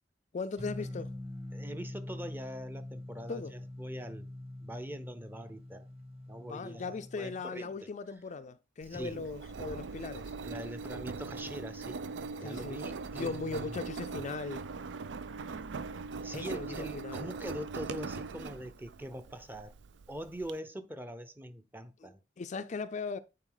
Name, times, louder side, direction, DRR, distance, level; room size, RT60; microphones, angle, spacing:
voice 1, 0.3-1.2 3.3-3.5 6.4-10.3 12.4-12.8 13.2-14.6 16.3-17.3 22.0-22.1 22.4-23.2, left 4 dB, 40° left, 0.4 m, -38 dB
sound 1, 0.6-7.4, left 1 dB, 35° right, 1.8 m, -44 dB
voice 2, 1.5-4.3 4.6-5.9 6.3-7.9 8.9-9.3 10.4-12.0 12.4-13.8 16.1-19.7 20.1-22.2, equal, 10° right, 0.7 m, -43 dB
Engine, 8.8-20.5, right 4 dB, 75° right, 0.5 m, -41 dB
9.0 x 4.2 x 3.9 m
head